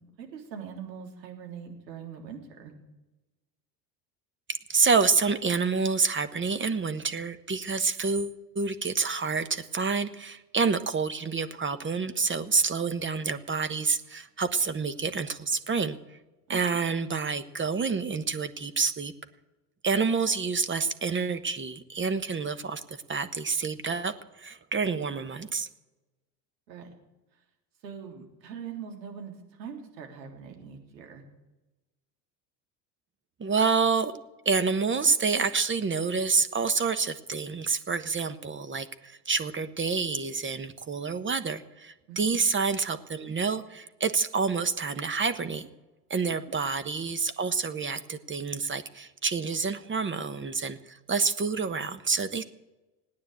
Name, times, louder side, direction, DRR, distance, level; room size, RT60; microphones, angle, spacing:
voice 1, 0.2-2.7 16.5-16.6 26.7-26.9 27.8-31.2 42.1-42.4, right 7 dB, 85° right, 3 dB, 3.5 m, -42 dB
voice 2, 4.5-16.0 16.5-19.1 19.8-25.7 33.4-34.2 34.4-45.7 46.1-52.4, right 5 dB, 25° right, 12 dB, 1.2 m, -28 dB
18.0 x 9.7 x 8.3 m, 1.1 s
hypercardioid pair, 80°, 49 cm